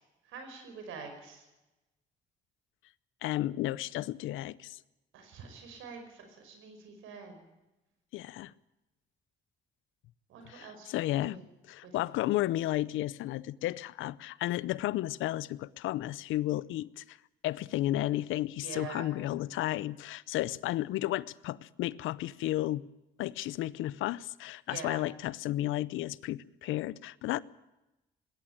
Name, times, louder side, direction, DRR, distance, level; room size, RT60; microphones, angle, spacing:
voice 1, 0.3-1.5 5.1-7.4 10.3-10.9 11.3-11.5 11.8-11.9 18.6-19.1 24.7-25.0, right 5 dB, 85° right, 5.2 m, -45 dB
voice 2, 3.2-4.8 8.1-8.5 10.4-11.4 11.7-17.2 17.4-22.8 23.2-27.4, left 15 dB, 85° left, 0.7 m, -33 dB
20.0 x 17.5 x 8.8 m
supercardioid pair, 55°, 20 cm